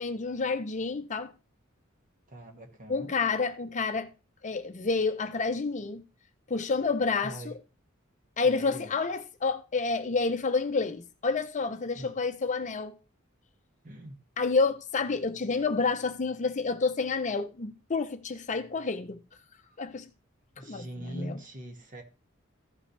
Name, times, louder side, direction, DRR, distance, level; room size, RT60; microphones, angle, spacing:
voice 1, 0.0-1.3 2.9-4.1 4.4-6.0 6.5-7.5 8.4-13.0 14.4-19.2 19.8-20.1 20.6-21.4, left 4 dB, 35° left, 0.6 m, -29 dB
voice 2, 2.3-3.2 7.2-7.5 8.4-8.9 11.9-12.2 13.8-14.2 20.6-22.0, right 1 dB, 40° right, 1.8 m, -42 dB
15.0 x 5.6 x 3.3 m
head